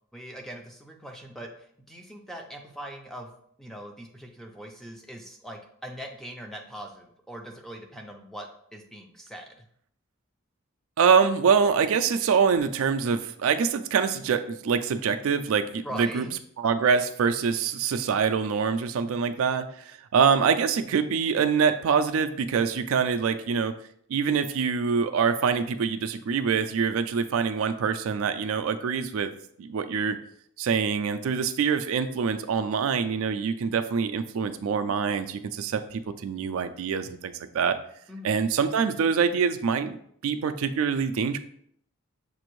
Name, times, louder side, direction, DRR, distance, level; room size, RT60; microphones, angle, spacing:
voice 1, 0.1-3.3 3.6-9.5 15.8-16.3 38.1-38.4, equal, ahead, 2 dB, 0.4 m, -41 dB
voice 2, 11.0-16.2 16.6-23.7 24.1-29.3 29.6-30.2 30.6-37.8 38.2-40.0 40.2-41.4, right 6 dB, 65° right, 9 dB, 0.3 m, -25 dB
6.8 x 2.6 x 3.0 m, 0.66 s
head